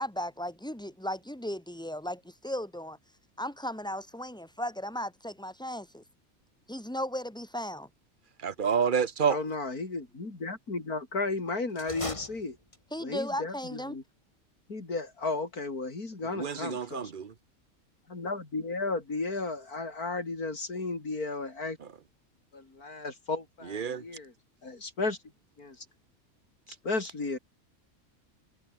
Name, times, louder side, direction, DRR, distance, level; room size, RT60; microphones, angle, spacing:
voice 1, 0.0-3.0 3.4-6.0 6.7-7.9 12.9-14.0, left 1 dB, 5° left, 4.2 m, -36 dB
voice 2, 8.4-9.4 16.3-17.3 23.7-24.0, right 6 dB, 40° right, 1.0 m, -28 dB
voice 3, 9.3-12.6 13.0-14.0 14.7-17.1 18.1-21.8 22.5-24.3 24.6-25.2 25.6-25.9 26.7-27.4, left 3 dB, 90° left, 4.6 m, -34 dB
sound 1, 11.7-13.1, left 1 dB, 20° left, 3.2 m, -40 dB
omnidirectional pair, 1.5 m